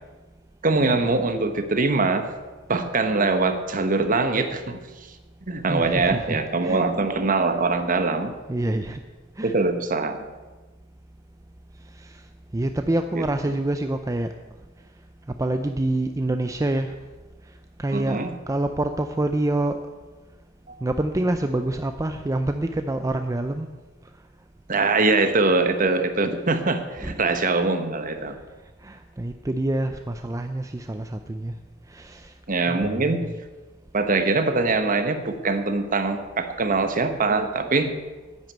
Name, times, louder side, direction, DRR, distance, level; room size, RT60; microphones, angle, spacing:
voice 1, 0.6-2.3 2.7-4.8 5.5-8.3 9.4-10.3 13.1-13.2 17.9-18.3 24.7-28.3 32.5-33.2 33.9-38.0, right 3 dB, 45° right, 8 dB, 1.2 m, -23 dB
voice 2, 5.7-6.9 8.5-9.0 9.4-9.6 11.9-12.2 12.5-14.3 15.4-17.0 17.8-19.8 20.8-23.7 27.0-27.2 27.5-27.6 28.8-31.5 31.9-32.3 32.7-33.4, right 1 dB, 15° right, 7 dB, 0.5 m, -27 dB
10.5 x 9.2 x 8.1 m, 1.3 s
head